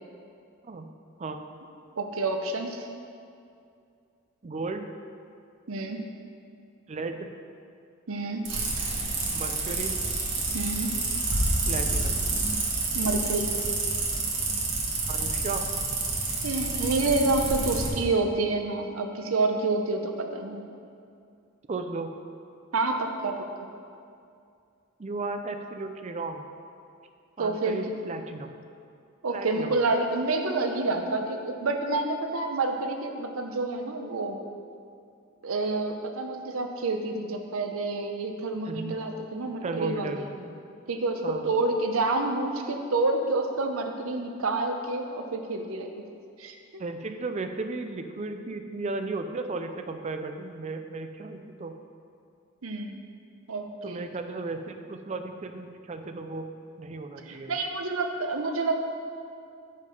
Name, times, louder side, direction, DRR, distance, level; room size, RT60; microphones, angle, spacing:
voice 1, 2.0-2.9 5.7-6.0 8.1-8.4 10.5-10.9 12.9-13.5 16.4-20.6 22.7-23.4 27.4-27.8 29.2-34.4 35.4-40.3 40.9-46.0 46.4-46.8 52.6-52.9 53.5-54.0 57.2-58.8, right 3 dB, 85° right, 4 dB, 0.7 m, -28 dB
voice 2, 4.4-4.9 6.9-7.3 9.3-10.0 11.6-12.2 15.1-15.7 21.7-22.1 25.0-26.4 27.4-28.5 29.3-29.8 38.6-39.0 39.6-40.6 41.2-41.5 46.8-51.7 53.8-56.5 56.8-57.6, right 3 dB, 35° right, 7 dB, 0.4 m, -35 dB
sound 1, 8.5-17.9, right 3 dB, 60° right, 1.5 m, -28 dB
7.4 x 5.2 x 5.3 m, 2.4 s
head